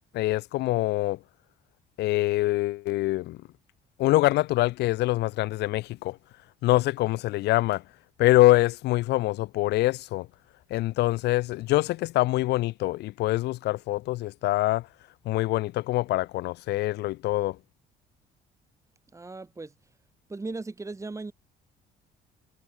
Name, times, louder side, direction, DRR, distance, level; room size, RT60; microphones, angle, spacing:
voice 1, 0.1-1.2 2.0-3.4 4.0-6.2 6.6-7.8 8.2-10.3 10.7-14.9 15.3-17.6, left 18 dB, 80° left, 2.5 m, -24 dB
voice 2, 19.1-19.7 20.3-21.3, right 3 dB, 15° right, 7.0 m, -37 dB
cardioid pair, 110°, 17 cm